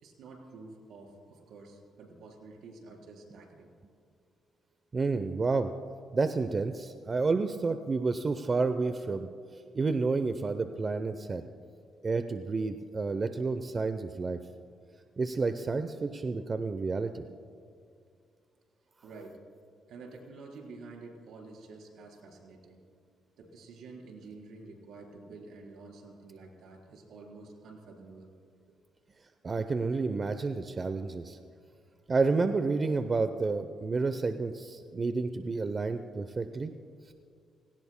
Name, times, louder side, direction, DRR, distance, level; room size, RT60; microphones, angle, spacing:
voice 1, 0.0-3.7 19.0-19.4 19.9-22.8 23.4-28.3, right 3 dB, 75° right, 0 dB, 4.1 m, -49 dB
voice 2, 4.9-5.7 6.1-9.3 9.7-11.4 12.0-14.4 15.2-17.2 29.4-31.4 32.1-36.7, right 4 dB, 35° right, 9 dB, 0.6 m, -30 dB
29.0 x 18.0 x 2.2 m, 2.2 s
cardioid pair, 90°, 0 cm